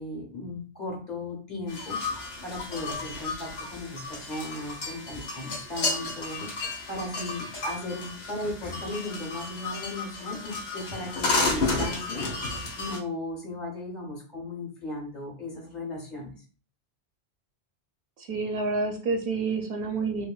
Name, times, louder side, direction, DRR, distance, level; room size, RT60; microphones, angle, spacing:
voice 1, 0.0-2.0 2.4-12.2 12.8-16.3, left 2 dB, 40° left, -2 dB, 1.2 m, -36 dB
sound 1, 1.7-13.0, left 3 dB, 75° left, 1.3 m, -32 dB
voice 2, 18.2-20.3, right 4 dB, 65° right, 3 dB, 0.7 m, -28 dB
3.4 x 2.7 x 2.3 m, 0.39 s
omnidirectional pair, 1.1 m